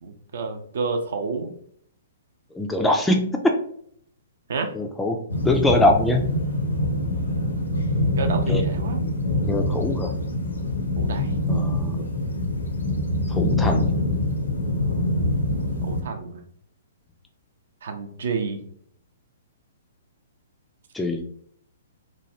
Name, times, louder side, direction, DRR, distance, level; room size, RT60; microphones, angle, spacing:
voice 1, 0.0-1.5 4.5-4.7 8.2-9.0 11.0-11.3 15.8-16.4 17.8-18.6, right 4 dB, 55° right, 6 dB, 0.4 m, -29 dB
voice 2, 2.6-3.3 4.7-5.2 5.4-6.2 8.5-8.6 9.5-10.1 11.5-12.0 13.3-13.9 20.9-21.2, left 1 dB, 5° left, 2 dB, 0.3 m, -22 dB
sound 1, 5.3-16.0, left 1 dB, 75° left, 0.6 m, -24 dB
3.1 x 2.2 x 2.7 m, 0.63 s
figure-of-eight pair, 115°, 0 cm